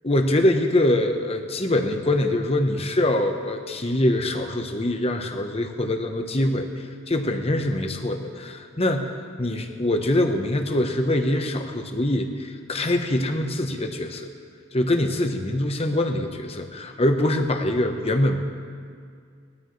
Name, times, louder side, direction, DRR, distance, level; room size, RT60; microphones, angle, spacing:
voice 1, 0.0-14.3 14.7-18.4, left 1 dB, 30° left, 5 dB, 1.0 m, -24 dB
20.5 x 13.0 x 3.2 m, 2.2 s
head